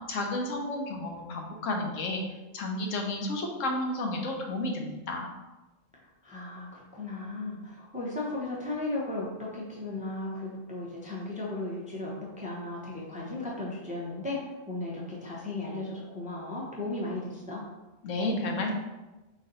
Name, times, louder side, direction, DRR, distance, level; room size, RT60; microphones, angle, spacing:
voice 1, 0.1-2.2 2.5-5.3 18.0-18.7, left 2 dB, 80° left, 2 dB, 1.1 m, -31 dB
voice 2, 5.9-9.3 9.5-17.6, left 2 dB, 10° right, -4 dB, 0.5 m, -36 dB
4.0 x 2.6 x 3.9 m, 1.1 s
omnidirectional pair, 1.3 m